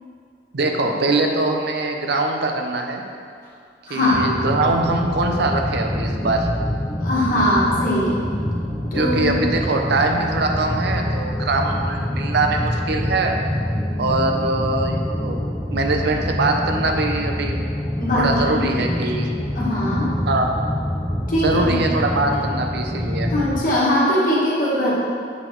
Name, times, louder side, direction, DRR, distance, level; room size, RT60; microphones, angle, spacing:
voice 1, 0.5-3.0 3.9-6.5 8.9-13.3 14.0-15.4 15.7-17.6 18.2-19.4 20.3-20.5 21.4-23.3, right 2 dB, 60° right, 3 dB, 0.7 m, -22 dB
voice 2, 3.9-4.2 7.0-8.2 8.9-9.4 18.0-18.8 19.5-20.1 21.3-21.8 23.3-24.9, left 1 dB, 50° left, -7 dB, 1.7 m, -20 dB
sound 1, 4.1-23.6, left 1 dB, 5° left, 0.5 m, -25 dB
7.2 x 4.1 x 4.5 m, 2.3 s
head